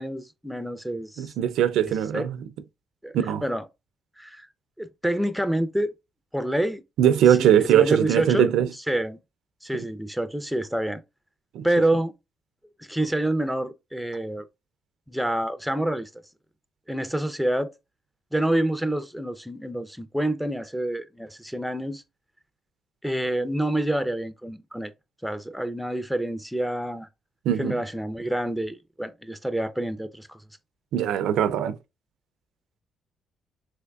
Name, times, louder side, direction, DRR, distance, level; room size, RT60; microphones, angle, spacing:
voice 1, 0.0-1.3 2.1-2.3 3.0-3.6 4.2-4.5 4.8-5.9 6.3-6.8 7.4-8.5 8.9-9.2 9.6-11.0 11.6-12.1 12.8-14.5 15.1-16.1 16.9-17.7 18.3-22.0 23.0-24.9 25.2-27.1 27.6-30.4, right 1 dB, ahead, 0.4 m, -27 dB
voice 2, 1.2-2.4 3.1-3.4 7.0-8.7 9.7-9.8 11.5-11.7 27.5-27.8 30.9-31.8, right 10 dB, 85° right, 0.4 m, -21 dB
3.5 x 3.2 x 2.3 m
cardioid pair, 90°, 0 cm